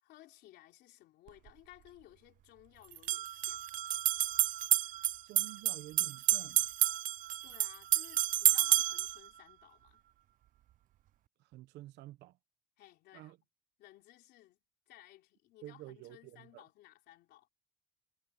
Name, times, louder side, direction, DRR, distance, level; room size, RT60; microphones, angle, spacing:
voice 1, 0.0-3.7 7.4-10.0 12.8-13.3 13.8-14.6 14.9-17.5, left 15 dB, 80° left, 3.6 m, -58 dB
sound 1, 1.3-1.4 2.9-9.2, right 13 dB, 50° right, 0.4 m, -30 dB
voice 2, 5.2-6.7 11.4-12.4 13.1-13.4 15.6-16.6, right 16 dB, 85° right, 1.1 m, -50 dB
cardioid pair, 110°, 17 cm